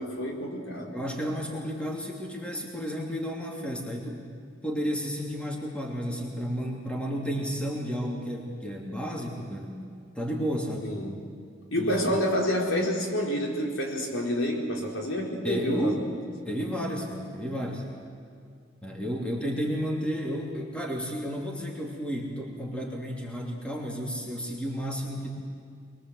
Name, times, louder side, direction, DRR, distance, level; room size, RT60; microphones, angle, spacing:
voice 1, 0.0-0.9 10.8-11.3 11.7-16.1, equal, 80° left, 0 dB, 4.0 m, -28 dB
voice 2, 0.9-4.2 4.6-9.8 10.1-10.9 11.7-12.2 15.4-16.0 16.5-17.9 18.8-25.3, equal, 5° left, -1 dB, 3.0 m, -32 dB
23.5 x 23.0 x 8.0 m, 2.3 s
head